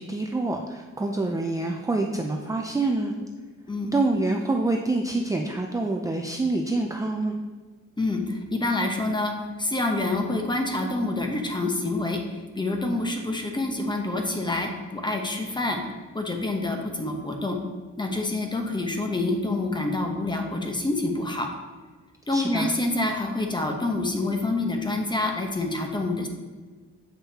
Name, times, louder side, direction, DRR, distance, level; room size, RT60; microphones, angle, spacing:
voice 1, 0.0-3.1 3.9-7.3 22.3-22.7, right 2 dB, 10° right, 2 dB, 0.4 m, -26 dB
voice 2, 3.7-4.0 8.0-15.8 16.1-17.6 18.0-21.5 22.3-26.3, left 2 dB, 15° left, 3 dB, 0.9 m, -27 dB
7.3 x 5.4 x 2.9 m, 1.4 s
cardioid pair, 90°, 30 cm